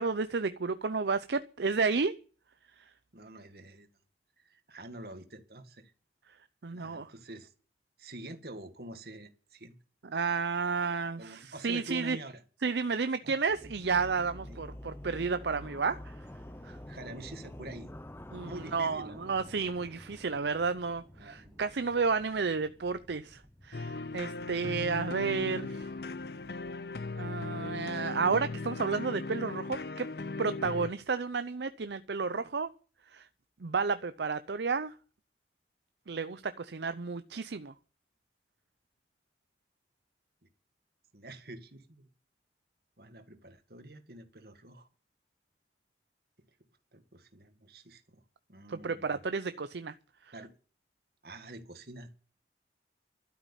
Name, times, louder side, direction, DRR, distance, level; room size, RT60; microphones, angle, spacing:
voice 1, 0.0-2.1 6.6-7.1 10.1-12.2 12.6-16.2 16.6-16.8 18.3-25.9 27.2-30.1 30.4-32.7 33.1-33.3 33.6-34.9 36.1-37.7 48.7-49.9, right 4 dB, 75° right, 0.6 m, -32 dB
voice 2, 3.1-3.9 4.4-5.9 6.7-7.5 8.0-9.7 11.2-12.4 13.2-13.3 14.5-14.6 16.9-17.9 18.4-19.2 21.2-21.6 41.1-42.1 43.0-44.9 46.9-48.2 48.5-49.2 50.3-50.5 51.2-52.1, right 1 dB, 60° right, 2.0 m, -46 dB
sound 1, 13.5-28.4, left 1 dB, 15° left, 0.7 m, -49 dB
sound 2, 23.7-30.9, left 3 dB, 60° left, 0.7 m, -38 dB
12.5 x 8.2 x 9.0 m
head